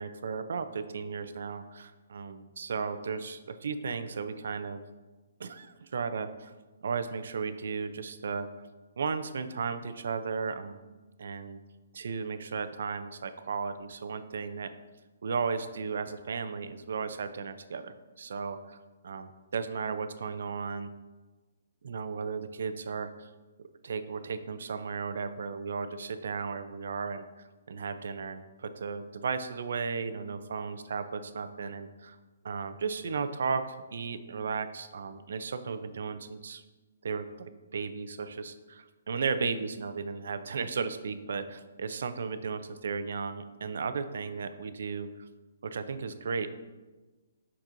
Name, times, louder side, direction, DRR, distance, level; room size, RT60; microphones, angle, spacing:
voice 1, 0.0-4.8 5.4-6.5 6.8-8.5 9.0-11.6 11.9-14.7 15.2-18.8 19.0-20.9 21.8-23.3 23.6-27.2 27.7-32.2 32.4-33.6 33.9-36.6 37.0-45.3 45.6-46.5, right 5 dB, 60° right, 11 dB, 0.5 m, -35 dB
7.1 x 6.0 x 2.6 m, 1.2 s
hypercardioid pair, 170°, 0 cm